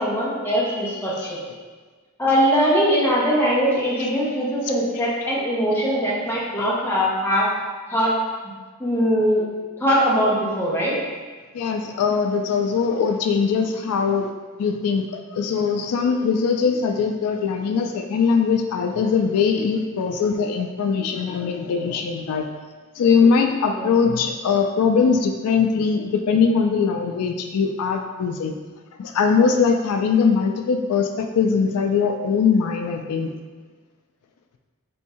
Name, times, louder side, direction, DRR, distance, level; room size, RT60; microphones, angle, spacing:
voice 1, 0.0-1.4 2.2-7.5 7.9-8.1 8.8-9.5 9.8-10.9 23.7-23.9, equal, 10° left, -6 dB, 0.8 m, -21 dB
voice 2, 11.5-14.3 14.6-15.0 15.3-22.5 23.0-28.5 29.0-33.3, left 5 dB, 85° left, 5 dB, 0.3 m, -21 dB
3.5 x 2.7 x 4.2 m, 1.4 s
head